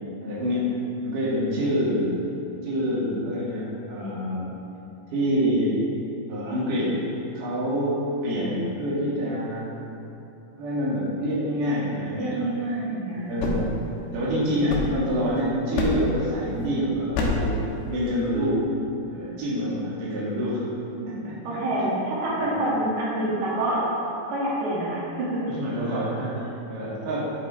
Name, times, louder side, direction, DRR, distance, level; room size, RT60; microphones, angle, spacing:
voice 1, 0.2-2.1 2.6-4.6 5.1-5.8 6.3-7.0 7.4-9.7 10.6-12.8 13.3-13.7 14.1-18.7 19.1-20.7 21.1-21.6 22.4-22.6 25.5-27.2, equal, 60° right, -8 dB, 3.6 m, -27 dB
voice 2, 12.2-13.6 21.0-21.1 21.4-23.8 24.3-25.4, right 1 dB, 90° right, -7 dB, 4.1 m, -27 dB
sound 1, 13.1-15.3 15.8-16.3 17.1-17.6, left 3 dB, 80° left, 3.1 m, -28 dB
10.5 x 9.8 x 3.3 m, 2.9 s
omnidirectional pair, 4.5 m